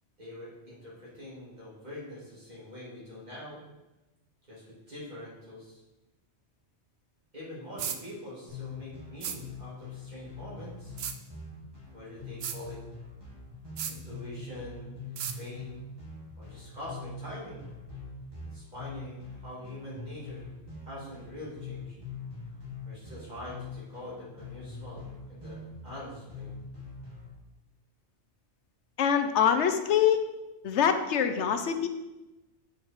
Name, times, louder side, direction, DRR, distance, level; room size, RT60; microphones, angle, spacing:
voice 1, 0.2-3.6 4.5-5.8 7.3-11.0 11.9-12.8 13.9-15.7 16.4-17.7 18.5-20.5 20.8-22.0 22.8-25.6 25.8-26.6, left 1 dB, 40° right, -8 dB, 3.1 m, -44 dB
sound 1, 7.8-8.0 9.2-9.4 11.0-11.2 12.4-12.6 13.8-14.0 15.2-15.4, right 8 dB, 70° right, 0.8 m, -34 dB
sound 2, 8.5-27.3, left 3 dB, 20° right, 2.9 m, -44 dB
voice 2, 29.0-30.2 30.6-31.9, left 8 dB, 85° left, 8 dB, 1.0 m, -24 dB
8.6 x 4.9 x 4.7 m, 1.0 s
omnidirectional pair, 1.2 m